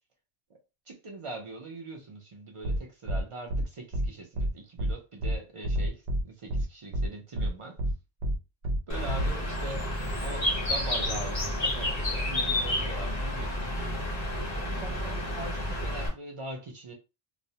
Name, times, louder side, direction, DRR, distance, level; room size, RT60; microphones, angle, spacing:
voice 1, 0.9-7.8 8.9-13.9 14.3-16.9, right 2 dB, 55° right, 0.3 m, -42 dB
sound 1, 2.6-2.8 3.1-3.2 3.5-3.6 3.9-4.1 4.4-4.5 4.8-4.9 5.2-5.3 5.6-6.2 6.5-6.6 6.9-7.1 7.4-7.5 7.8-7.9 8.2-8.3 8.6-8.8 9.1-9.3, equal, 75° right, 0.8 m, -28 dB
Bird, 8.9-16.1, left 1 dB, 40° left, 0.8 m, -30 dB
2.4 x 2.0 x 2.7 m
omnidirectional pair, 1.2 m